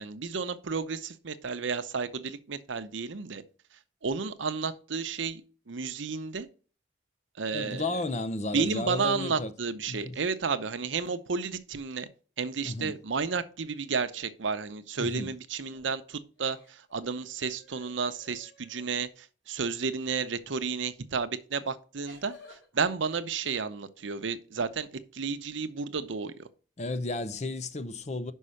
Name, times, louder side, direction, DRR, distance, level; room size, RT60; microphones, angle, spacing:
voice 1, 0.0-3.4 4.0-5.4 5.7-6.5 7.4-8.0 8.5-12.1 12.4-24.9 25.1-26.3, right 5 dB, 80° right, 0.7 m, -32 dB
voice 2, 7.5-9.5 9.9-10.1 12.6-12.9 15.0-15.3 26.8-28.3, left 2 dB, 35° left, 0.6 m, -33 dB
sound 1, 15.5-16.0 16.4-18.9 20.7-20.9 22.0-22.7, left 2 dB, 85° left, 3.1 m, -54 dB
5.5 x 5.5 x 6.3 m
head